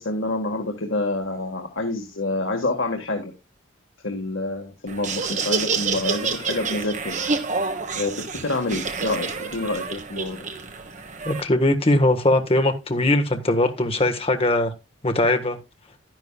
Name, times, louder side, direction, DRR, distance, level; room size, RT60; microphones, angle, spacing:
voice 1, 0.0-3.3 4.0-7.2 8.0-10.4, left 2 dB, 75° left, 1.7 m, -27 dB
Laughter, 4.9-11.4, right 5 dB, 40° right, 1.4 m, -28 dB
voice 2, 11.2-14.7 15.0-15.6, left 1 dB, 30° left, 1.4 m, -20 dB
11.5 x 10.5 x 2.4 m
head